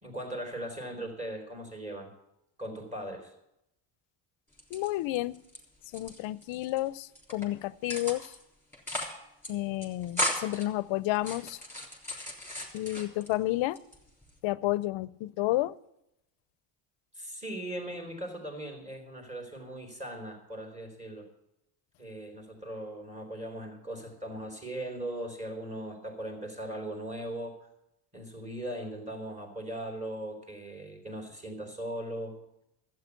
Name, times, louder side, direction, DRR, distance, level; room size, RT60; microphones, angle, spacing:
voice 1, 0.0-2.1 2.6-3.3 17.1-21.3 22.0-27.6 28.1-32.4, right 1 dB, 15° right, 3.9 m, -39 dB
sound 1, 4.5-5.6 5.9-6.8 7.2-7.5 7.9-8.4 8.7-9.2 9.4-9.5 9.8-10.7 11.1-13.3 13.8-14.4, left 1 dB, 5° left, 3.5 m, -36 dB
voice 2, 4.7-5.4 5.9-8.3 9.5-11.6 12.7-13.8 14.4-15.8, left 17 dB, 70° left, 0.6 m, -31 dB
12.0 x 8.7 x 8.1 m
cardioid pair, 100°, 48 cm